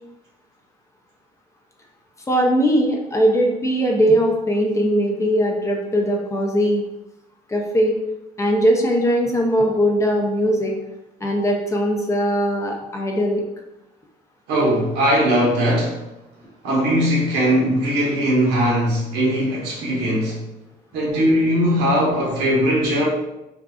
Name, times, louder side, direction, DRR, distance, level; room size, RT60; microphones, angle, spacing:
voice 1, 2.3-6.8 7.5-7.9 8.4-10.7 11.2-13.4, equal, 15° left, 1 dB, 0.4 m, -20 dB
voice 2, 14.5-16.0 16.6-20.4 20.9-23.0, equal, 90° right, -4 dB, 0.9 m, -19 dB
2.6 x 2.3 x 2.3 m, 0.91 s
cardioid pair, 110°, 17 cm